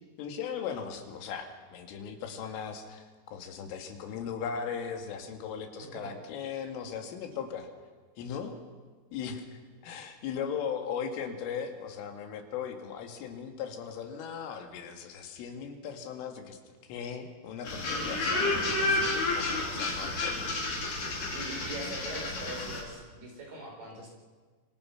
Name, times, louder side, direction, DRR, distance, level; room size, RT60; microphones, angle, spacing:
voice 1, 0.2-3.0 3.3-7.7 8.2-8.6 9.1-20.5, left 7 dB, 85° left, 5 dB, 4.6 m, -38 dB
sound 1, 17.6-22.8, left 2 dB, 45° left, 5.3 m, -30 dB
voice 2, 21.3-24.1, right 1 dB, 45° right, 0 dB, 6.3 m, -42 dB
26.5 x 25.5 x 5.9 m, 1.5 s
omnidirectional pair, 5.6 m